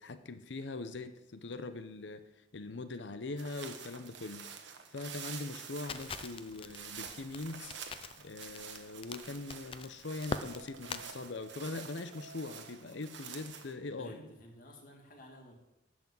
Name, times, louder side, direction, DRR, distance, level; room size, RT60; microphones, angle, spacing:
voice 1, 0.0-2.2 2.5-4.4 4.9-7.7 8.2-14.2, left 3 dB, 65° left, 11 dB, 0.7 m, -42 dB
sound 1, 3.4-13.7, right 7 dB, 65° right, 1.2 m, -48 dB
Crackle, 5.9-11.0, left 4 dB, 30° left, 0.5 m, -43 dB
sound 2, 9.1-9.4 10.4-11.8 12.1-13.0, right 3 dB, 85° right, 0.7 m, -56 dB
voice 2, 14.0-15.6, equal, 45° left, 0 dB, 2.4 m, -52 dB
11.0 x 6.0 x 7.7 m, 0.91 s
head